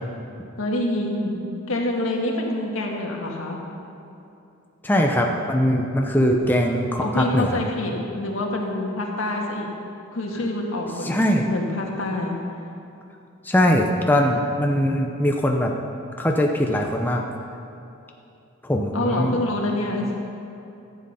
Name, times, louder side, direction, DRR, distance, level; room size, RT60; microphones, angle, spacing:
voice 1, 0.6-1.4 1.7-3.6 7.0-9.7 10.1-12.4 18.9-20.1, left 1 dB, 75° left, 0 dB, 1.6 m, -26 dB
voice 2, 4.8-7.6 11.0-11.5 13.4-15.7 16.2-17.2 18.6-19.3, equal, 10° left, 1 dB, 0.6 m, -21 dB
14.0 x 7.6 x 5.6 m, 2.7 s
head